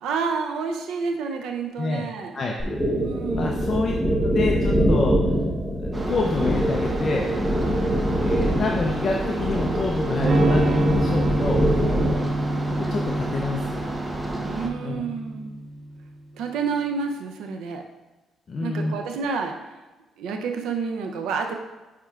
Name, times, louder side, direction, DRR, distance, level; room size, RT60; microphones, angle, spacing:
voice 1, 0.0-2.4 2.9-3.8 7.6-7.8 11.8-12.1 14.4-15.6 16.3-17.8 18.6-19.5 20.2-21.5, right 5 dB, 85° right, 4 dB, 0.6 m, -29 dB
sound 1, 2.6-12.3, equal, ahead, 1.2 m, -24 dB
voice 2, 3.3-3.9 4.2-5.2 5.8-7.3 8.2-11.6 12.7-13.8 14.8-15.1 18.5-19.0, left 3 dB, 45° left, 0 dB, 0.6 m, -27 dB
sound 2, 5.9-14.7, right 2 dB, 15° right, 0.8 m, -31 dB
Electric guitar / Strum, 10.2-15.9, right 1 dB, 55° right, 1.1 m, -26 dB
9.4 x 4.4 x 2.4 m, 1.1 s
cardioid pair, 90°, 0 cm